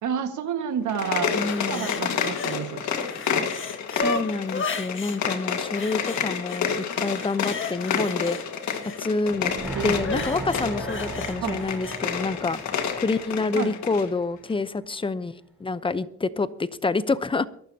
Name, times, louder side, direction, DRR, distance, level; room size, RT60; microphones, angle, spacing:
voice 1, 0.0-1.4 1.7-2.9 9.7-10.2 11.4-11.6 13.5-13.7, right 8 dB, 75° right, 7 dB, 1.8 m, -30 dB
sound 1, 0.8-14.1, left 7 dB, 70° left, 1.8 m, -30 dB
voice 2, 1.3-2.0 3.9-8.4 9.0-9.5 9.8-12.6 13.0-17.5, left 3 dB, 15° left, 14 dB, 0.8 m, -27 dB
sound 2, 1.5-2.6 2.9-5.2 5.8-6.6 7.0-9.0 10.0-12.0 12.5-12.6, left 3 dB, 40° left, 1.7 m, -34 dB
sound 3, 9.3-14.4 14.7-14.8, right 2 dB, 5° right, 4.1 m, -37 dB
23.0 x 12.0 x 2.9 m, 0.66 s
cardioid pair, 90°, 30 cm